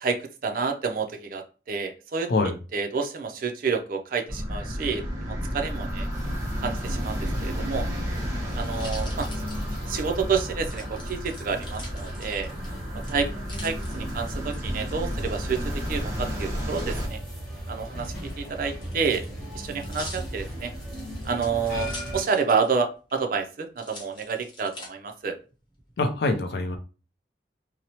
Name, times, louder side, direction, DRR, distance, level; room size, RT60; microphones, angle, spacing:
voice 1, 0.0-2.3 2.7-6.1 6.6-7.9 8.5-9.3 9.9-12.5 13.1-13.3 13.6-17.2 17.7-19.2 19.5-20.7 21.2-25.4, right 5 dB, 50° right, 5 dB, 0.4 m, -29 dB
sound 1, 4.3-17.1, equal, 15° right, 0.7 m, -32 dB
sound 2, 6.1-22.2, right 1 dB, 5° left, 1.3 m, -37 dB
sound 3, 8.4-10.2 10.7-12.7 13.0-14.6 16.4-16.9 17.9-22.8 23.1-23.2 23.8-24.9 25.5-26.0, left 2 dB, 25° left, 0.8 m, -44 dB
voice 2, 26.0-26.8, left 3 dB, 65° left, 5 dB, 0.4 m, -24 dB
2.9 x 2.0 x 2.7 m, 0.34 s
head